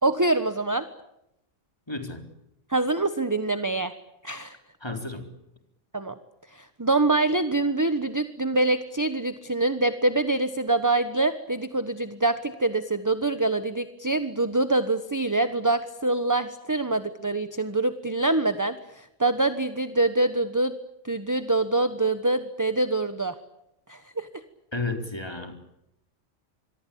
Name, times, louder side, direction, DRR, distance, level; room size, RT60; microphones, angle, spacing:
voice 1, 0.0-0.9 2.7-3.9 4.2-4.6 5.9-6.1 6.5-20.7 21.0-23.3 23.9-24.3, right 2 dB, 15° right, 11 dB, 1.2 m, -25 dB
voice 2, 1.9-2.2 4.8-5.3 24.7-25.5, left 3 dB, 20° left, 6 dB, 4.0 m, -32 dB
26.5 x 23.5 x 8.7 m, 0.86 s
omnidirectional pair, 1.3 m